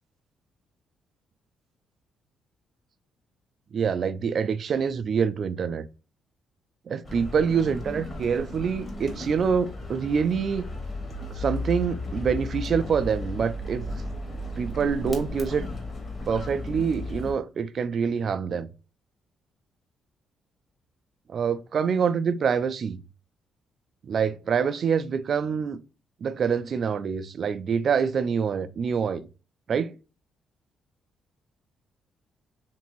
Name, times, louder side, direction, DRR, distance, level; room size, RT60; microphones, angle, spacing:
voice 1, 3.7-5.9 6.9-10.7 11.4-13.8 14.6-15.7 16.3-18.7 21.3-23.0 24.0-25.8 26.2-29.2 29.7-30.0, right 6 dB, 55° right, 0.3 m, -26 dB
sound 1, 7.0-17.3, left 2 dB, 35° left, 1.0 m, -35 dB
2.9 x 2.6 x 2.9 m
cardioid pair, 90°, 0 cm